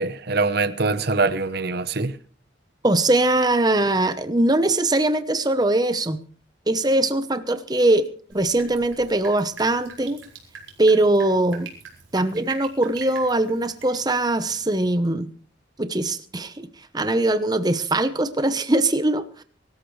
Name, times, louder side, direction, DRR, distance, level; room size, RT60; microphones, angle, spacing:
voice 1, 0.0-2.2, right 3 dB, 55° right, 1.0 m, -23 dB
voice 2, 2.8-6.2 6.7-10.2 10.8-11.7 12.1-15.3 15.8-16.7 16.9-19.4, right 2 dB, 20° right, 0.9 m, -21 dB
Drip, 8.3-14.9, right 5 dB, 75° right, 4.4 m, -44 dB
23.5 x 13.5 x 3.2 m
head